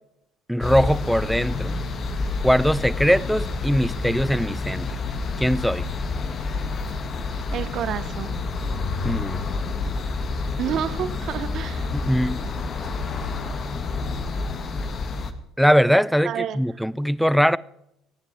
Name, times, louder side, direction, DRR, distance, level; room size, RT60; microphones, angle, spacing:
voice 1, 0.5-1.7 2.4-4.9 5.4-5.9 9.0-9.4 11.9-12.4 15.6-17.6, equal, ahead, 0.5 m, -21 dB
sound 1, 0.6-15.3, left 3 dB, 40° left, 1.4 m, -28 dB
sound 2, 3.2-5.7, left 9 dB, 70° left, 0.9 m, -42 dB
voice 2, 7.5-8.4 10.6-11.9 16.2-16.6, right 9 dB, 55° right, 0.8 m, -29 dB
29.0 x 9.9 x 3.3 m
hypercardioid pair, 60°, 0 cm